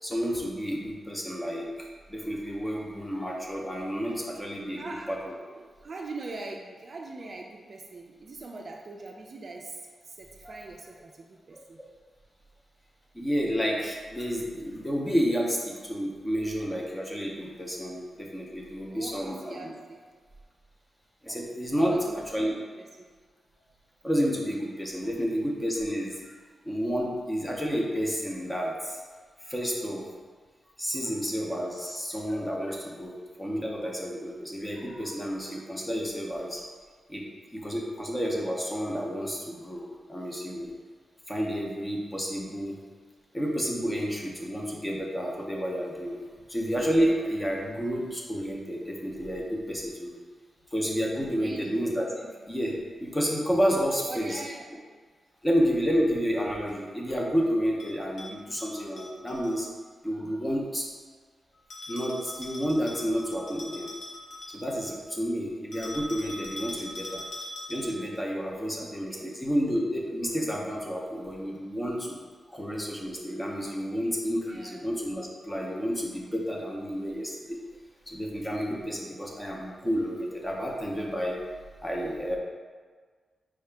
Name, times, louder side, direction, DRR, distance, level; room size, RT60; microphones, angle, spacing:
voice 1, 0.0-5.3 10.4-10.6 11.5-11.9 13.1-19.7 21.2-22.0 22.3-22.5 24.0-26.2 26.6-29.0 29.4-30.1 30.8-36.6 37.1-37.2 37.5-40.7 41.3-42.8 43.3-46.2 46.5-50.2 50.7-54.4 55.4-59.7 60.0-60.8 61.9-63.9 64.5-67.2 67.7-77.6 78.1-81.4 81.8-82.4, equal, 10° left, -2 dB, 0.6 m, -30 dB
voice 2, 4.8-11.8 18.9-20.0 21.3-21.4 21.7-22.5 22.8-22.9 46.4-46.5 51.4-51.8 54.1-54.8 68.7-69.4 74.4-74.9, right 3 dB, 40° right, 0 dB, 0.3 m, -42 dB
Bell, 57.8-59.5 61.7-64.9 65.7-68.1, left 1 dB, 90° left, 0.9 m, -42 dB
4.7 x 2.8 x 3.3 m, 1.5 s
wide cardioid pair, 160°, 0 cm